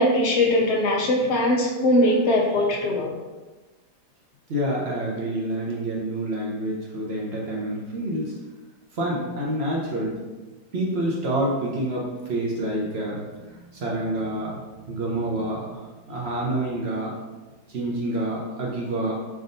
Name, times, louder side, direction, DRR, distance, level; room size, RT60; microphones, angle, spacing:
voice 1, 0.0-3.1, left 1 dB, 80° left, -1 dB, 0.6 m, -21 dB
voice 2, 4.5-8.3 8.9-10.2 10.7-14.6 14.9-17.1 17.7-19.2, right 1 dB, 50° right, -4 dB, 0.8 m, -28 dB
4.1 x 3.6 x 2.6 m, 1.2 s
omnidirectional pair, 1.8 m